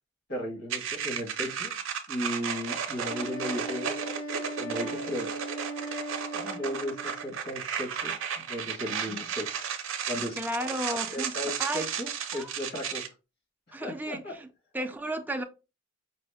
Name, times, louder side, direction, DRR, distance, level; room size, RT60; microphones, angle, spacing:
voice 1, 0.3-1.7 2.1-3.9 4.6-5.3 6.6-9.6 10.1-10.4 11.1-13.0 13.7-14.3, left 1 dB, 55° left, 1.5 m, -35 dB
sound 1, 0.7-13.1, right 7 dB, 75° right, 0.6 m, -34 dB
Wind instrument woodwind instrument, 3.1-7.4, right 1 dB, 70° left, 1.1 m, -38 dB
voice 2, 6.3-6.6 9.1-9.2 10.4-11.8 12.3-12.5 13.7-14.5 14.7-15.4, right 1 dB, 10° right, 0.3 m, -34 dB
4.8 x 2.1 x 3.4 m
head